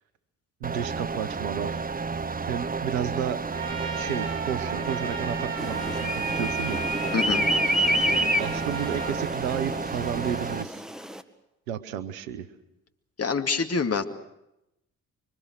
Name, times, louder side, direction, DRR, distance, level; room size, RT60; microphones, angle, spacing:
sound 1, 0.6-10.6, right 4 dB, 20° right, 1.0 m, -32 dB
voice 1, 0.6-1.8 2.5-3.4 3.9-6.8 8.1-10.8 11.7-12.5, right 9 dB, 80° right, 12 dB, 1.4 m, -32 dB
Trumpet, 3.5-9.2, right 4 dB, 60° right, 2.7 m, -36 dB
sound 2, 5.6-11.2, equal, ahead, 1.9 m, -28 dB
voice 2, 7.1-7.4 13.2-14.0, left 5 dB, 35° left, 7 dB, 2.4 m, -26 dB
26.5 x 24.0 x 6.3 m, 0.88 s
hypercardioid pair, 45°, 40 cm